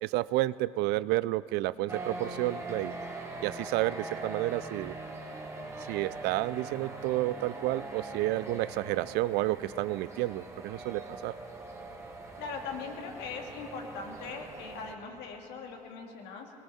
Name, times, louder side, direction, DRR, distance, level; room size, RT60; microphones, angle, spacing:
voice 1, 0.0-2.9 3.4-4.9 5.9-11.3, right 17 dB, 65° right, 19 dB, 0.4 m, -30 dB
sound 1, 1.9-14.9, right 2 dB, 15° right, 1.9 m, -42 dB
voice 2, 12.4-16.5, left 5 dB, 70° left, 2 dB, 2.1 m, -40 dB
19.0 x 18.0 x 4.2 m, 2.9 s
hypercardioid pair, 75°, 18 cm